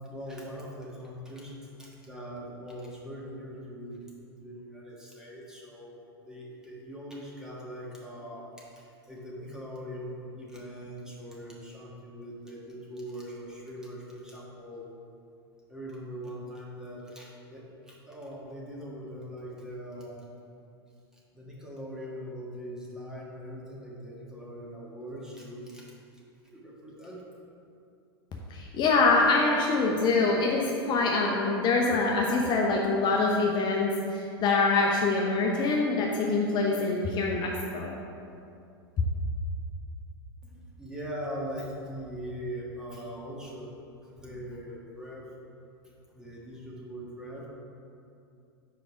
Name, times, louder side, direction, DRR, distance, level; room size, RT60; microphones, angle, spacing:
voice 1, 0.1-1.5 1.8-4.0 4.4-6.0 6.2-8.7 9.1-14.9 15.7-20.2 21.3-25.9 26.5-27.2 40.4-43.7 44.1-45.3 46.1-47.5, equal, 5° right, -5 dB, 1.5 m, -41 dB
voice 2, 28.5-37.9, left 3 dB, 35° left, -1 dB, 0.8 m, -25 dB
5.1 x 5.0 x 5.7 m, 2.5 s
hypercardioid pair, 95°, 13 cm